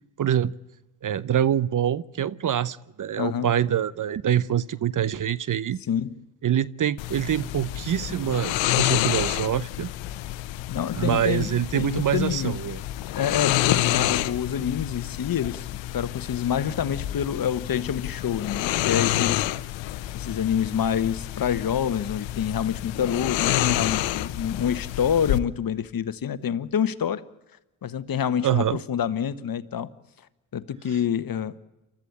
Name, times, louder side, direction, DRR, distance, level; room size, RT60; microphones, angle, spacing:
voice 1, 0.2-0.5 1.0-5.8 6.4-9.9 10.9-12.8 28.4-28.8, right 10 dB, 40° right, 0.8 m, -25 dB
voice 2, 3.2-3.5 5.9-6.2 10.7-12.5 13.2-19.5 20.1-27.2 27.8-29.9 30.5-31.6, left 8 dB, 45° left, 1.4 m, -27 dB
sound 1, 7.0-25.4, left 15 dB, 70° left, 1.0 m, -28 dB
29.0 x 13.5 x 8.6 m
hypercardioid pair, 55°, 48 cm